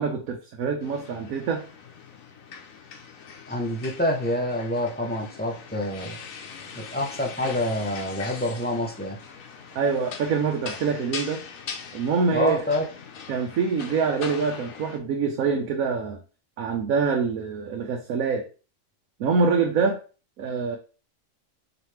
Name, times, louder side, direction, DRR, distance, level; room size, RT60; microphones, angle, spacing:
voice 1, 0.0-1.6 9.7-11.4 11.9-12.6 13.3-16.2 16.6-18.5 19.2-20.0 20.4-20.8, right 5 dB, 85° right, 2 dB, 1.2 m, -25 dB
sound 1, 0.8-15.0, left 6 dB, 75° left, 1.2 m, -41 dB
voice 2, 3.5-6.2 6.8-9.2 12.3-12.9, left 1 dB, 15° left, 1 dB, 0.4 m, -27 dB
4.8 x 3.0 x 3.2 m, 0.35 s
omnidirectional pair, 1.4 m